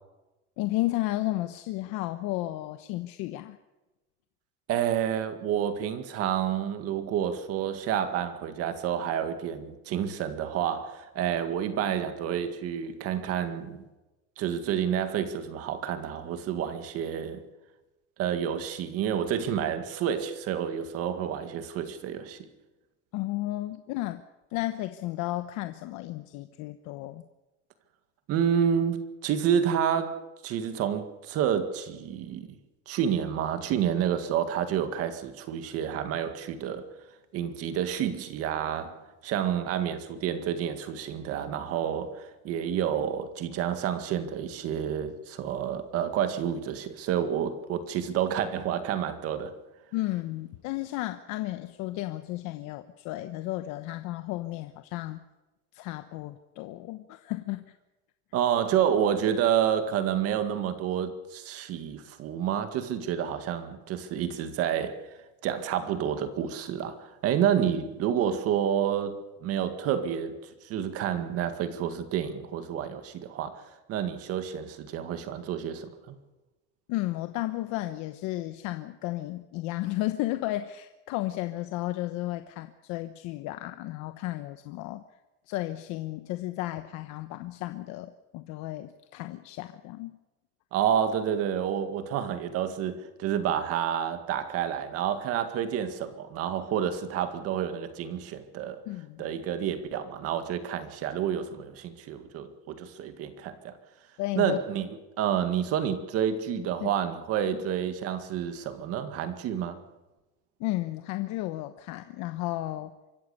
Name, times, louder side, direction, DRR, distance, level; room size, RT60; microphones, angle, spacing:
voice 1, 0.6-3.6 23.1-24.2 24.5-27.2 49.9-55.2 55.7-57.7 76.9-85.0 85.5-90.2 98.9-99.3 104.2-104.6 106.8-106.9 107.5-107.6 110.6-112.9, left 17 dB, 65° left, 1.1 m, -33 dB
voice 2, 4.7-13.8 14.4-17.4 18.2-22.5 28.3-32.5 32.9-36.9 37.3-49.5 58.3-65.0 65.4-76.1 90.7-98.8 99.2-103.8 104.4-104.9 105.2-109.8, right 9 dB, 50° right, 2.0 m, -29 dB
25.0 x 14.0 x 8.2 m
cardioid pair, 175°, 31 cm